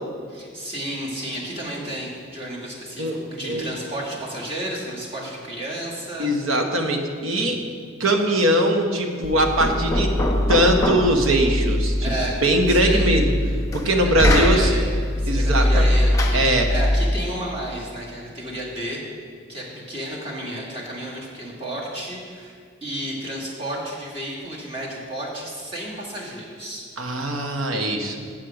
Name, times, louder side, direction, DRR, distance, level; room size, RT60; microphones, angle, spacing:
voice 1, 0.3-6.3 12.0-12.3 12.7-13.1 14.0-14.9 15.2-19.0 19.5-26.9, right 1 dB, 30° right, -5 dB, 1.8 m, -32 dB
voice 2, 6.2-7.6 8.0-10.1 10.5-12.1 12.4-13.3 13.7-14.7 15.3-15.9 16.3-16.7 27.0-28.2, right 1 dB, 85° right, 4 dB, 1.0 m, -21 dB
Knock, 9.2-17.1, left 1 dB, 15° left, 0.7 m, -22 dB
7.5 x 6.4 x 5.8 m, 2.2 s
head